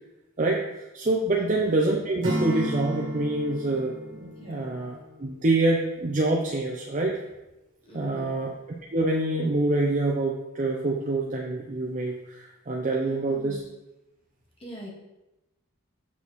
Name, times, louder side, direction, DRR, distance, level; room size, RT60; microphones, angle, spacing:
voice 1, 0.9-7.2 7.9-8.5 8.9-13.6, right 2 dB, 35° right, -1 dB, 0.5 m, -26 dB
Acoustic guitar / Strum, 2.2-5.3, equal, 60° right, 1.7 m, -32 dB
voice 2, 4.4-4.8 7.8-8.4 13.0-13.6 14.6-14.9, equal, 25° left, -3 dB, 1.1 m, -42 dB
7.0 x 6.1 x 3.1 m, 0.98 s
head